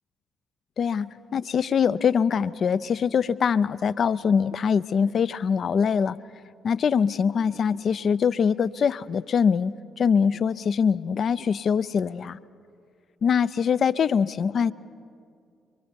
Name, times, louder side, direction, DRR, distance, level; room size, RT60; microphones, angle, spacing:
voice 1, 0.8-6.2 6.6-12.4 13.2-14.7, left 6 dB, 50° left, 17 dB, 0.5 m, -23 dB
24.5 x 24.5 x 5.3 m, 2.4 s
hypercardioid pair, 45°, 0 cm